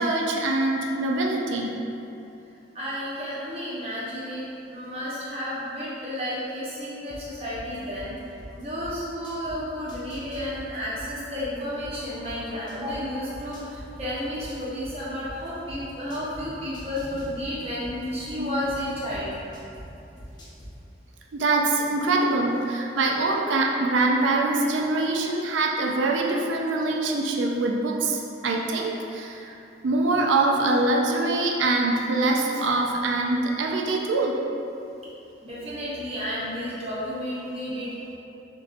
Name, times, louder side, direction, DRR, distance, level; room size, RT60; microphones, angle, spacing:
voice 1, 0.0-1.7 18.4-18.5 21.3-29.5 29.8-34.4 37.7-37.8 38.0-38.1, right 2 dB, 80° right, 0 dB, 0.4 m, -24 dB
voice 2, 2.7-8.1 8.6-19.7 35.4-38.1, equal, 30° right, -9 dB, 1.0 m, -32 dB
sound 1, 7.1-9.5 9.9-13.0 13.3-16.4 16.7-19.8 20.2-20.7, equal, 25° left, 0.6 m, -42 dB
6.5 x 2.6 x 2.5 m, 2.9 s
head